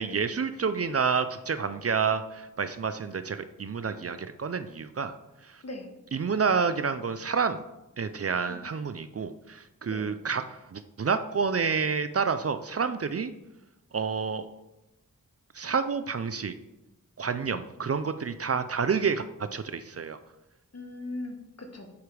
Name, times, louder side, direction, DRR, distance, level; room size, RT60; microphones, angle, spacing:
voice 1, 0.0-5.2 5.4-5.6 6.1-7.6 8.0-13.3 13.9-14.5 15.5-16.6 17.2-19.3 19.5-20.2, right 5 dB, 45° right, 11 dB, 0.5 m, -29 dB
voice 2, 20.7-21.9, left 2 dB, 50° left, 4 dB, 1.4 m, -40 dB
8.0 x 5.0 x 4.9 m, 0.96 s
wide cardioid pair, 75°, 33 cm